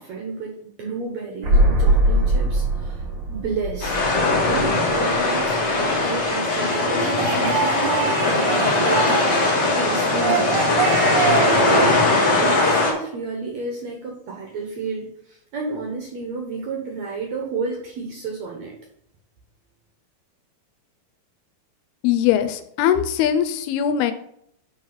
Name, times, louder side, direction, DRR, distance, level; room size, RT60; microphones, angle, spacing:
voice 1, 0.0-3.0 3.3-11.0 11.5-11.9 12.3-18.8, right 4 dB, 65° right, 0 dB, 1.9 m, -31 dB
sound 1, 1.4-5.2 5.4-5.5, right 1 dB, 45° right, 1.6 m, -21 dB
sound 2, 3.8-12.9, left 2 dB, 45° left, 1.4 m, -20 dB
sound 3, 6.7-9.6 10.1-11.9, right 7 dB, 85° right, 2.7 m, -25 dB
voice 2, 22.0-24.1, left 10 dB, 85° left, 9 dB, 2.7 m, -21 dB
7.4 x 4.8 x 5.6 m, 0.71 s
omnidirectional pair, 4.5 m